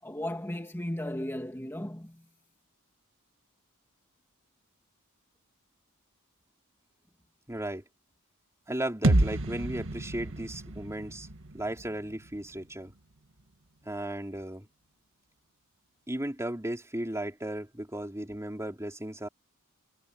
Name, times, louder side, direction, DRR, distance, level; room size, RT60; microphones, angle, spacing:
voice 1, 0.0-2.3, left 1 dB, 10° left, 2.3 m, -35 dB
voice 2, 7.5-7.8 8.7-11.3 11.5-12.9 13.8-14.7 16.1-19.3, right 1 dB, 15° right, 4.0 m, -35 dB
sound 1, 9.0-12.9, right 1 dB, 60° right, 1.7 m, -30 dB
head